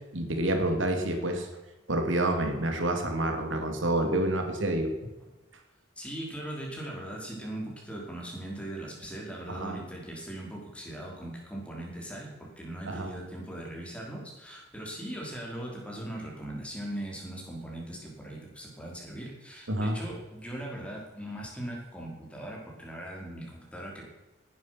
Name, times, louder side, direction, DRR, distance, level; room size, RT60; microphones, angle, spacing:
voice 1, 0.1-1.5 1.9-4.9 9.5-9.8 12.9-13.1 19.7-20.0, right 1 dB, 85° right, 4 dB, 2.9 m, -28 dB
voice 2, 6.0-24.0, right 1 dB, 5° left, -2 dB, 4.8 m, -39 dB
19.0 x 11.0 x 6.1 m, 1.1 s
head